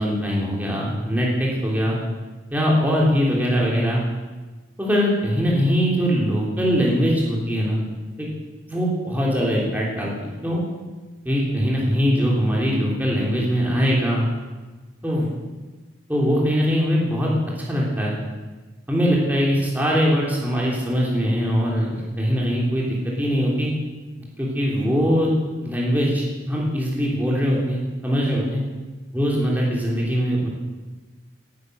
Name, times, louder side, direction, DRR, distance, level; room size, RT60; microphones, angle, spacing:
voice 1, 0.0-2.0 2.5-4.1 4.8-7.8 8.2-8.3 8.7-10.6 11.2-14.3 15.0-15.3 16.1-17.3 17.7-18.1 18.9-23.7 24.4-25.3 25.6-28.6 29.1-30.5, equal, 10° right, -4 dB, 3.2 m, -21 dB
18.0 x 10.5 x 6.6 m, 1.3 s
head